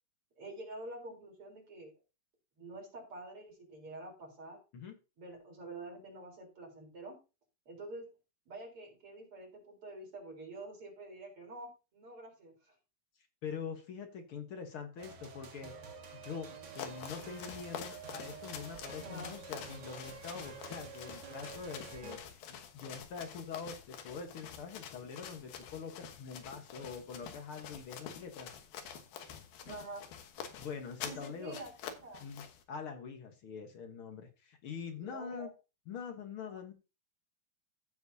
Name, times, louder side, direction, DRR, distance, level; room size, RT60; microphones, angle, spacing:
voice 1, 0.4-1.9 2.6-4.6 5.2-7.2 7.7-8.1 8.5-12.7 19.0-19.3 29.6-30.1 31.1-31.7 32.0-32.3 35.0-35.5 36.5-36.6, right 2 dB, 40° right, 0 dB, 4.5 m, -47 dB
voice 2, 13.4-15.7 16.2-28.5 30.6-31.6 32.2-35.5 35.9-36.7, left 6 dB, 60° left, 5 dB, 1.4 m, -44 dB
sound 1, 15.0-22.2, right 5 dB, 55° right, 1.1 m, -49 dB
sound 2, 16.6-32.6, left 8 dB, 85° left, 3.0 m, -47 dB
15.0 x 7.2 x 2.7 m, 0.30 s
omnidirectional pair, 4.0 m